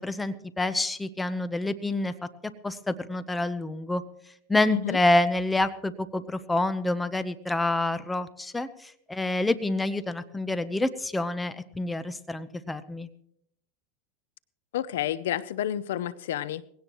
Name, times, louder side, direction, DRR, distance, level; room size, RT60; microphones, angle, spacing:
voice 1, 0.0-2.1 2.4-4.0 4.5-13.1, left 2 dB, 10° left, 13 dB, 0.8 m, -27 dB
voice 2, 14.7-16.6, left 11 dB, 80° left, 18 dB, 0.6 m, -30 dB
20.5 x 17.0 x 3.1 m, 0.72 s
supercardioid pair, 115°, 0 cm